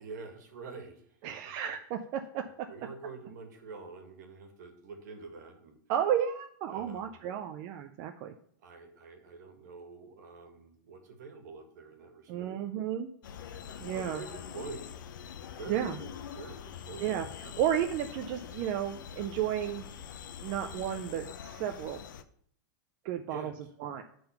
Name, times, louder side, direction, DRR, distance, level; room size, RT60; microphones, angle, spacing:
voice 1, 0.0-1.3 2.7-5.8 6.7-7.1 8.6-12.5 13.9-14.8 15.6-17.1 23.3-23.5, right 4 dB, 60° right, 5 dB, 1.6 m, -46 dB
voice 2, 1.2-2.7 5.9-8.3 12.3-13.1 13.8-14.2 15.7-16.0 17.0-19.9 20.4-22.0 23.0-23.5 23.8-24.0, right 10 dB, 25° right, 5 dB, 0.3 m, -33 dB
sound 1, 13.2-22.2, left 8 dB, 70° left, 0.6 m, -44 dB
8.8 x 3.8 x 5.6 m, 0.62 s
supercardioid pair, 170°, 11 cm